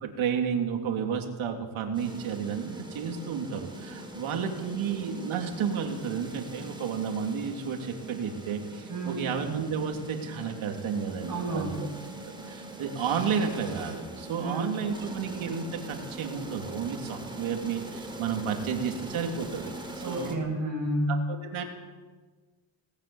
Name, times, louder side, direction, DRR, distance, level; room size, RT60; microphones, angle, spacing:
voice 1, 0.0-11.8 12.4-19.7 20.0-20.4 21.4-21.6, right 6 dB, 80° right, 3 dB, 3.4 m, -32 dB
sound 1, 1.9-20.4, right 1 dB, 10° right, 4.2 m, -42 dB
voice 2, 8.9-9.2 11.3-11.9 14.4-14.7 20.0-21.2, right 1 dB, 45° right, -5 dB, 7.6 m, -30 dB
20.0 x 19.0 x 7.4 m, 1.4 s
cardioid pair, 105°, 47 cm